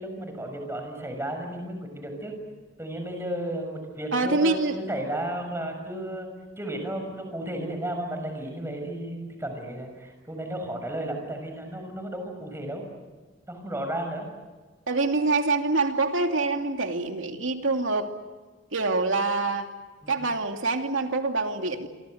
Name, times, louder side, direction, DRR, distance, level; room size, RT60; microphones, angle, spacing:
voice 1, 0.0-2.4 2.8-6.3 6.6-12.8 13.5-14.3 20.0-20.3, right 1 dB, 15° right, 4 dB, 6.6 m, -33 dB
voice 2, 4.1-4.8 14.9-18.1 18.7-19.7 20.1-21.9, right 3 dB, 85° right, 4 dB, 2.8 m, -25 dB
28.5 x 25.0 x 8.0 m, 1.3 s
head